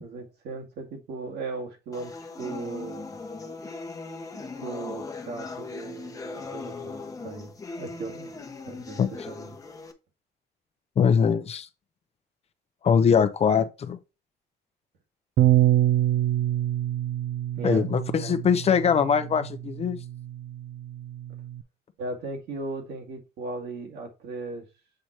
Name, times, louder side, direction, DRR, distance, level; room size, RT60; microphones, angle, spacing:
voice 1, 0.0-3.1 4.3-8.3 8.6-9.0 9.3-9.6 17.6-17.8 22.0-24.7, right 3 dB, 75° right, 2.3 m, -37 dB
sound 1, 1.9-9.9, left 4 dB, 20° left, 1.0 m, -39 dB
voice 2, 11.0-11.7 12.8-14.0 17.6-20.0, left 7 dB, 40° left, 0.7 m, -22 dB
Bass guitar, 15.4-21.6, right 13 dB, 55° right, 0.5 m, -26 dB
7.8 x 3.1 x 4.3 m
cardioid pair, 110°, 17 cm